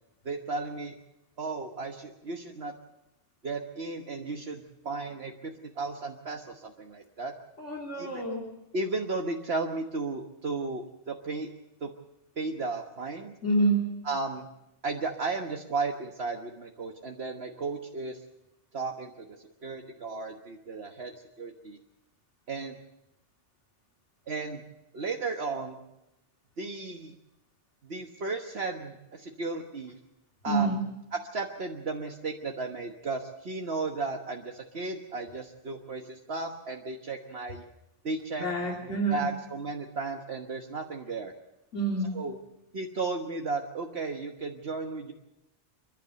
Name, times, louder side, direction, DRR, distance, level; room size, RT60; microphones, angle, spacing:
voice 1, 0.2-1.0 1.4-2.7 3.4-7.3 8.0-8.2 8.7-11.5 11.8-11.9 12.4-13.3 14.0-14.5 14.8-18.2 18.7-21.8 22.5-22.7 24.3-24.6 24.9-25.8 26.6-27.1 27.8-30.0 30.4-30.8 31.1-37.7 38.0-38.5 38.8-41.3 42.1-42.4 42.7-45.1, right 3 dB, 60° right, 2 dB, 1.5 m, -34 dB
voice 2, 7.6-8.5 13.4-13.9 30.5-30.8 38.4-39.2 41.7-42.1, right 2 dB, 85° left, -1 dB, 3.4 m, -27 dB
29.5 x 11.5 x 8.0 m, 0.89 s
omnidirectional pair, 1.2 m